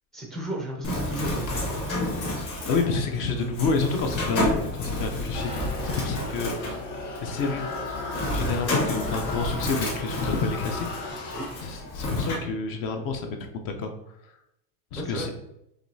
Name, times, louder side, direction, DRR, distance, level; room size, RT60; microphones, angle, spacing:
voice 1, 0.1-1.5 11.3-11.5 15.0-15.3, right 1 dB, ahead, -1 dB, 0.3 m, -33 dB
Bird, 0.8-12.3, left 1 dB, 35° left, 1.1 m, -31 dB
voice 2, 2.7-6.5 7.2-7.7 8.3-13.9 14.9-15.3, left 4 dB, 50° left, 5 dB, 0.6 m, -29 dB
sound 1, 5.3-12.0, left 2 dB, 85° left, 1.3 m, -35 dB
5.0 x 3.1 x 2.6 m, 0.81 s
cardioid pair, 165°, 43 cm